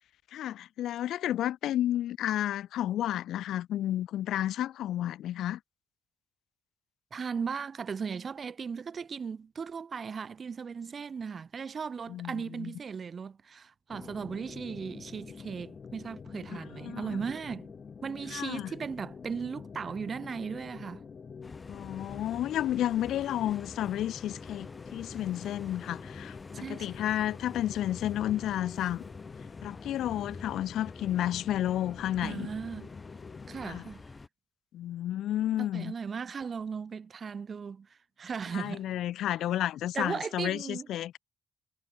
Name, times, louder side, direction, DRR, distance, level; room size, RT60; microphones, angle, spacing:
voice 1, 0.3-5.6 12.1-12.7 16.8-17.2 18.3-18.7 21.7-29.0 29.6-32.5 33.6-33.8 34.7-35.9 38.5-41.2, left 12 dB, 80° left, 1.2 m, -31 dB
voice 2, 7.1-17.7 18.0-21.0 26.5-26.9 32.2-32.9 33.5-34.0 35.6-37.9 38.2-38.9 39.9-40.9, right 6 dB, 45° right, 3.5 m, -37 dB
sound 1, 13.9-33.8, left 6 dB, 40° left, 2.3 m, -47 dB
sound 2, 21.4-34.3, left 3 dB, 25° left, 6.2 m, -47 dB
cardioid pair, 90°, 0 cm